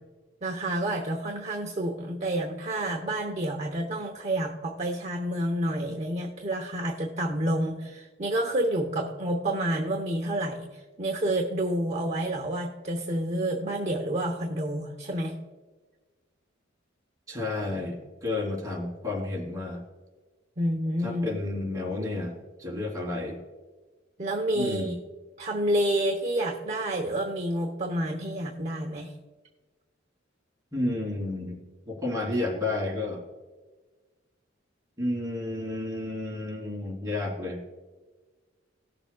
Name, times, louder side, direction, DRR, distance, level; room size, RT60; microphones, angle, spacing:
voice 1, 0.4-10.6 11.0-15.3 20.6-21.3 24.2-24.9 25.4-29.1, right 1 dB, 35° right, 2 dB, 0.9 m, -29 dB
voice 2, 17.3-19.8 21.0-23.4 24.5-25.0 30.7-31.6 31.9-33.2 35.0-37.6, left 2 dB, 20° right, -3 dB, 3.0 m, -31 dB
18.5 x 6.9 x 2.3 m, 1.3 s
head